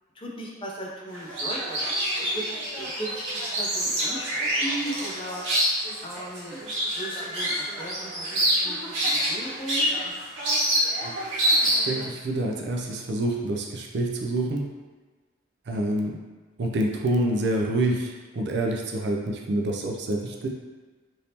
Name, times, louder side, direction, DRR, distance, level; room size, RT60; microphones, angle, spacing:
voice 1, 0.2-5.4 6.0-6.6 7.0-9.9, right 1 dB, 25° left, -3 dB, 0.5 m, -37 dB
sound 1, 1.1-12.0, right 1 dB, 70° right, 1.0 m, -27 dB
voice 2, 11.7-14.7 15.7-16.2 16.6-20.5, right 1 dB, 55° right, 1 dB, 0.4 m, -27 dB
3.4 x 2.6 x 2.8 m, 1.4 s
head